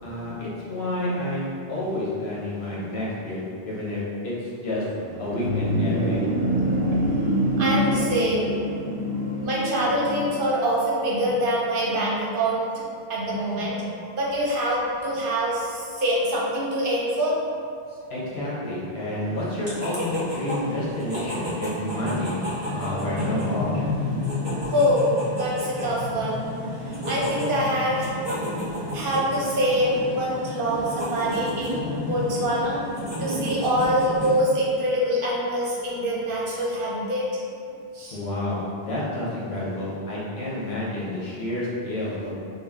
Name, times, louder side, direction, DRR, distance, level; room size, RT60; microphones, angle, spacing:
voice 1, 0.0-4.8 5.2-6.3 18.1-23.9 38.1-42.3, left 1 dB, 65° left, -7 dB, 1.2 m, -29 dB
sound 1, 4.9-10.5, equal, 90° right, 0.9 m, -25 dB
voice 2, 7.6-8.7 9.1-17.4 24.6-26.4 26.7-28.2 28.9-32.8 33.2-37.4 37.9-38.2, equal, 55° right, -5 dB, 0.9 m, -25 dB
sound 2, 19.5-34.4, left 1 dB, 25° right, 0.7 m, -31 dB
3.8 x 2.4 x 3.6 m, 2.4 s
omnidirectional pair, 1.2 m